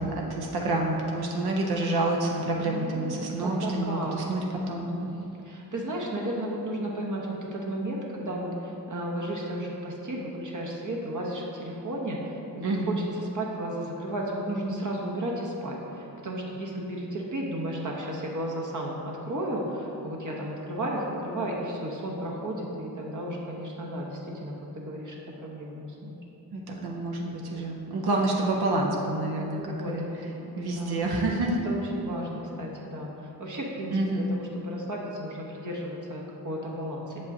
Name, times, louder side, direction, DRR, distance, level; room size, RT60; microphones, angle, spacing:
voice 1, 0.0-4.9 12.6-13.0 26.5-29.6 29.9-30.1 30.6-31.6 33.9-34.3, right 2 dB, 75° right, -1 dB, 0.7 m, -28 dB
voice 2, 2.6-4.2 4.9-5.2 5.4-26.2 29.5-31.0 31.6-37.2, right 1 dB, 50° right, -2 dB, 0.9 m, -34 dB
6.9 x 5.2 x 2.7 m, 2.9 s
cardioid pair, 75°, 38 cm